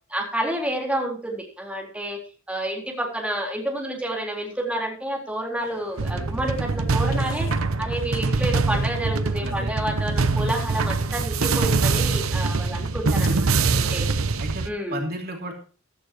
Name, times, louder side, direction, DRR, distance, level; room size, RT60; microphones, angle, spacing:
voice 1, 0.1-2.2 2.5-7.5 7.8-13.5 13.7-14.1 14.6-15.0, right 1 dB, 5° right, 0 dB, 4.0 m, -29 dB
sound 1, 5.6-13.9, left 3 dB, 80° left, 5.8 m, -45 dB
sound 2, 6.0-6.6 8.5-8.6 9.6-10.9, right 1 dB, 65° right, 7.1 m, -44 dB
sound 3, 6.0-14.7, right 3 dB, 85° right, 0.9 m, -23 dB
voice 2, 9.4-9.7 13.5-14.1 14.4-15.5, right 1 dB, 50° right, 3 dB, 2.8 m, -33 dB
15.5 x 14.0 x 3.0 m, 0.37 s
head